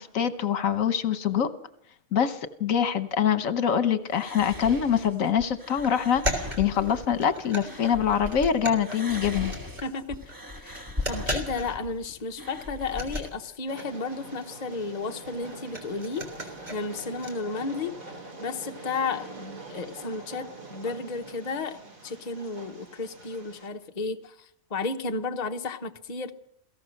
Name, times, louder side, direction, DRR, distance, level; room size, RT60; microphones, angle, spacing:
voice 1, 0.0-1.5 2.1-9.5, left 8 dB, 70° left, 1.4 m, -25 dB
sound 1, 4.1-8.5 8.8-13.3, left 2 dB, 15° right, 1.5 m, -38 dB
sound 2, 5.8-10.0 10.3-10.4 10.7-12.0 12.3-12.4 12.6-17.3, right 1 dB, 30° right, 3.7 m, -37 dB
voice 2, 9.8-10.2 10.5-18.0 18.4-26.3, left 4 dB, 35° left, 1.0 m, -33 dB
Train, 13.7-23.7, right 3 dB, 80° right, 3.3 m, -44 dB
28.0 x 17.0 x 6.5 m
omnidirectional pair, 1.4 m